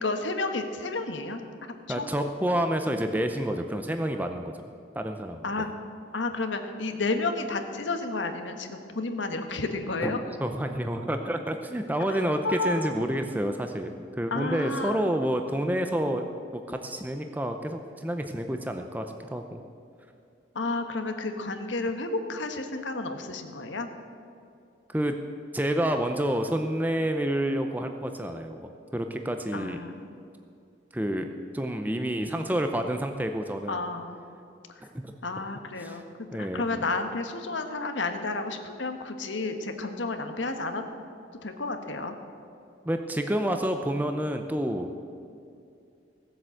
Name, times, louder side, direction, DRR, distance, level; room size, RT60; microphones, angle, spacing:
voice 1, 0.0-1.4 1.9-2.1 5.4-5.7 6.1-10.2 12.1-12.9 14.3-15.1 20.5-23.9 29.5-30.1 33.7-34.2 35.2-40.8 41.4-42.1, left 3 dB, 85° left, 6 dB, 1.3 m, -31 dB
voice 2, 1.9-4.5 5.0-5.4 10.0-10.1 10.4-16.2 16.5-19.6 24.9-25.2 25.5-29.8 30.9-31.3 31.5-33.8 34.8-35.1 35.8-36.0 36.3-36.8 42.9-44.9, right 1 dB, 10° right, 5 dB, 0.6 m, -29 dB
16.5 x 7.8 x 7.7 m, 2.5 s
head